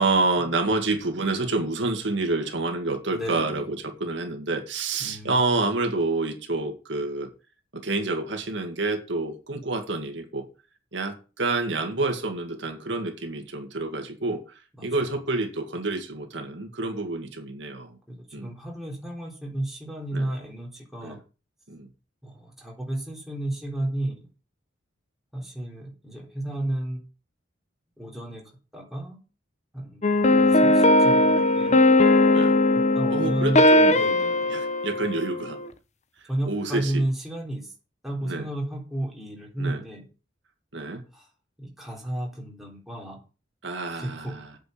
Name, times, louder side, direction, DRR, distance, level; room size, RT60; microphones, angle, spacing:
voice 1, 0.0-7.3 7.7-10.5 10.9-14.4 14.8-17.9 18.3-18.5 20.1-20.3 21.0-21.2 21.7-21.9 32.3-32.6 33.1-34.0 34.5-35.6 36.5-37.0 38.2-38.5 39.6-39.8 40.7-41.0 43.6-44.4, right 3 dB, 65° right, 2.1 m, -28 dB
voice 2, 3.1-3.7 5.0-5.4 14.8-15.1 18.1-21.2 22.2-24.3 25.3-27.0 28.0-28.4 28.7-29.2 29.7-31.8 32.9-33.6 33.9-34.6 36.3-37.7 38.0-40.0 41.1-41.3 41.6-43.2 43.9-44.4, right 1 dB, ahead, 3.7 m, -32 dB
sound 1, 30.0-35.7, left 2 dB, 35° left, 0.8 m, -19 dB
8.7 x 6.3 x 8.3 m
head